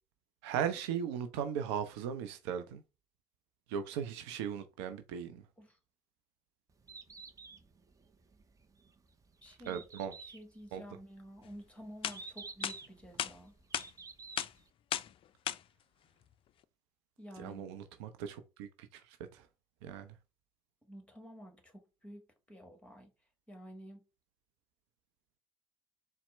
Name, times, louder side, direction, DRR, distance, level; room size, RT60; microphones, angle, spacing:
voice 1, 0.4-2.8 3.7-5.4 9.7-10.1 10.7-10.8 17.4-19.5 19.8-20.1, right 8 dB, 65° right, 0.5 m, -38 dB
Bird, 6.7-14.7, right 4 dB, 20° right, 0.6 m, -51 dB
voice 2, 9.4-9.8 10.3-13.5 17.2-17.8 20.9-23.1 23.5-24.0, equal, 10° left, 1.5 m, -51 dB
sound 1, 11.6-11.7 12.0-12.2 12.6-12.8 13.2-13.3 13.7-13.9 14.4-14.5 14.9-15.1 15.5-15.6, left 10 dB, 35° left, 0.3 m, -34 dB
4.2 x 2.1 x 4.2 m
figure-of-eight pair, 65°, 15 cm